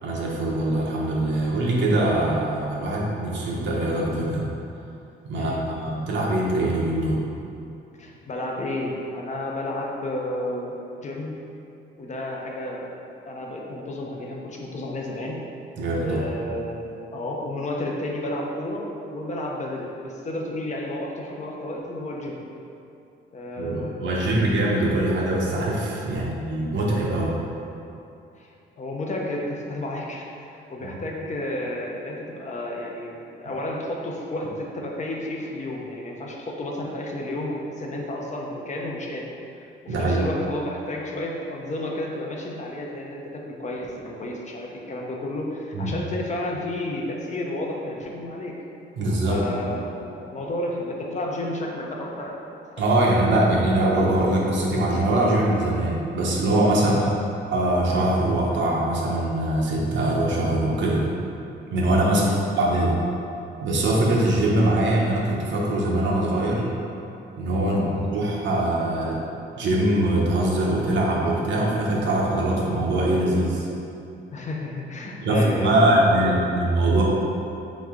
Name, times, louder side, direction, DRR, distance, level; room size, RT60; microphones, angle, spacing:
voice 1, 0.0-4.4 5.2-7.2 15.8-16.2 23.6-27.4 39.9-40.2 45.7-45.9 49.0-49.7 52.8-57.1 57.5-61.1 61.7-63.0 63.6-66.6 67.4-69.2 69.6-73.7 75.2-77.0, right 1 dB, 70° right, -3 dB, 0.8 m, -22 dB
voice 2, 8.0-11.4 12.0-12.9 13.2-15.4 16.0-22.4 23.3-24.5 26.2-26.3 28.4-30.3 30.5-39.3 39.8-48.6 49.3-52.4 53.2-53.3 56.8-57.2 62.0-62.5 67.7-68.1 74.3-76.6, left 1 dB, 35° left, -1 dB, 0.6 m, -32 dB
3.5 x 3.1 x 3.6 m, 2.7 s
cardioid pair, 90°, 20 cm